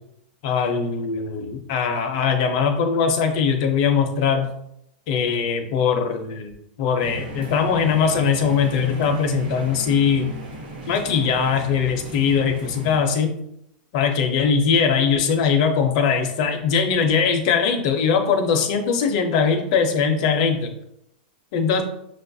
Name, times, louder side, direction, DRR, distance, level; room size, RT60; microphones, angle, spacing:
voice 1, 0.4-4.5 5.1-6.5 6.8-10.3 10.9-13.3 13.9-20.7 21.5-21.8, left 6 dB, 40° left, 5 dB, 0.5 m, -21 dB
sound 1, 7.0-13.0, right 2 dB, 80° right, 1.3 m, -35 dB
6.1 x 2.3 x 2.6 m, 0.77 s
supercardioid pair, 170°, 5 cm